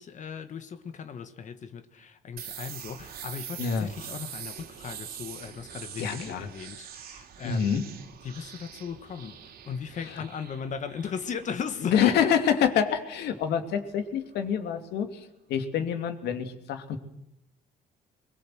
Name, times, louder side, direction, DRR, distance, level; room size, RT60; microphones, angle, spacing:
voice 1, 0.0-7.7 8.2-12.3, left 6 dB, 45° left, 9 dB, 1.5 m, -37 dB
sound 1, 2.4-14.0, right 9 dB, 65° right, 3.0 m, -44 dB
voice 2, 3.6-3.9 6.0-6.5 7.4-7.8 10.1-10.2 11.8-17.0, left 8 dB, 75° left, 7 dB, 2.8 m, -27 dB
22.0 x 22.0 x 7.9 m, 0.82 s
cardioid pair, 110°, 17 cm